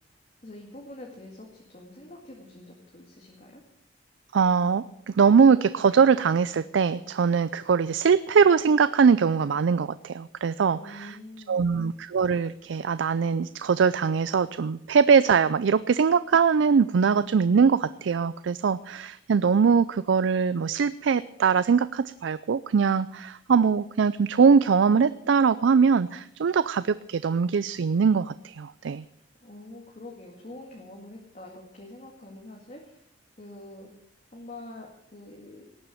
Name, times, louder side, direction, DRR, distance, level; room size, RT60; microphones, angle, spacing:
voice 1, 0.4-3.6 10.8-11.8 29.4-33.0 33.4-33.9 34.3-35.7, left 1 dB, 40° left, -1 dB, 2.0 m, -45 dB
voice 2, 4.3-11.2 11.5-29.0, right 6 dB, 85° right, 15 dB, 0.4 m, -22 dB
18.5 x 6.9 x 7.7 m, 0.78 s
head